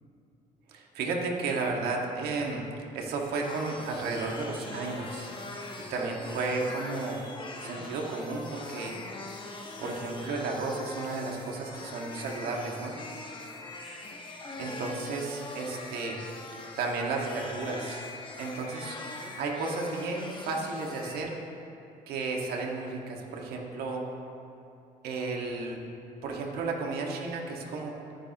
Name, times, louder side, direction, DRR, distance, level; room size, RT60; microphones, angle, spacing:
voice 1, 0.7-2.6 2.9-5.3 5.9-7.2 7.6-9.0 9.8-12.9 14.6-16.2 16.8-18.0 18.4-19.0 19.4-21.4 22.1-24.0 25.0-25.8 26.2-27.9, right 3 dB, 80° right, -1 dB, 1.8 m, -33 dB
sound 1, 3.4-21.2, left 2 dB, 30° left, 1.4 m, -42 dB
20.5 x 10.0 x 3.0 m, 2.7 s
supercardioid pair, 75°, 16 cm